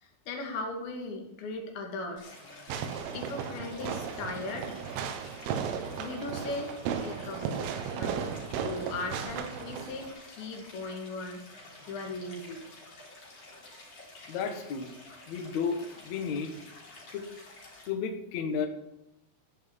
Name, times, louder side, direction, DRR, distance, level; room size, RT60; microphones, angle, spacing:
voice 1, 0.0-2.4 3.1-4.7 6.0-6.8 7.0-7.7 7.9-8.4 8.6-11.4 11.9-12.7, left 2 dB, 65° left, 2 dB, 4.4 m, -38 dB
Stream, 2.2-17.9, left 2 dB, 35° left, 4.0 m, -51 dB
Fireworks, 2.7-10.1, right 7 dB, 85° right, 3.8 m, -35 dB
voice 2, 14.3-14.9 15.3-16.5 17.1-17.2 17.9-18.7, left 6 dB, 85° left, 5 dB, 1.5 m, -32 dB
14.5 x 6.0 x 9.4 m, 0.88 s
omnidirectional pair, 5.9 m